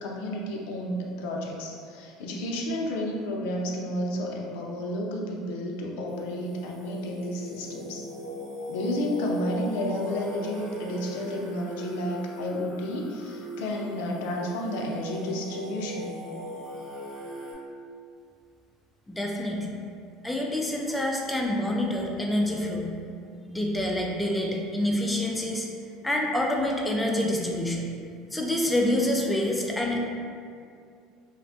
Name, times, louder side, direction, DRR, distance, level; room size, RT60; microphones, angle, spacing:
voice 1, 0.0-8.0 8.7-16.1, left 1 dB, 80° left, -1 dB, 0.3 m, -31 dB
Singing, 6.1-17.5, equal, 55° right, 1.1 m, -39 dB
voice 2, 19.1-19.7 20.2-22.9 23.5-25.7 26.0-27.9 28.3-30.0, left 1 dB, 5° left, -1 dB, 0.4 m, -27 dB
2.4 x 2.1 x 2.6 m, 2.3 s
supercardioid pair, 105°, 0 cm